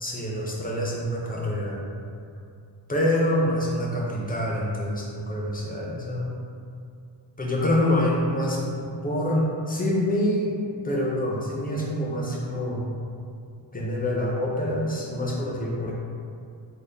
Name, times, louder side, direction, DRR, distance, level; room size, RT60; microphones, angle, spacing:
voice 1, 0.0-1.8 2.9-6.4 7.4-10.5 10.8-12.9 13.7-15.9, left 1 dB, 20° left, -4 dB, 0.3 m, -26 dB
3.8 x 2.0 x 3.2 m, 2.4 s
wide cardioid pair, 155°, 46 cm